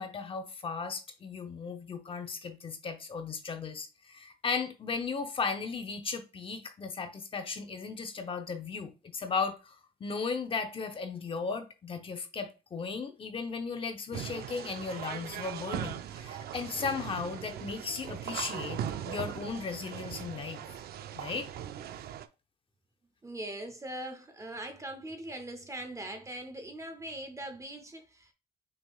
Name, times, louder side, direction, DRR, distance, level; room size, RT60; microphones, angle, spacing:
voice 1, 0.0-18.8 19.0-20.6 21.1-21.5, left 5 dB, 30° left, 0.8 m, -36 dB
sound 1, 14.1-22.3, right 10 dB, 65° right, 0.5 m, -39 dB
voice 2, 23.2-28.3, right 1 dB, 20° right, 0.6 m, -41 dB
6.3 x 3.6 x 2.3 m
cardioid pair, 145°, 17 cm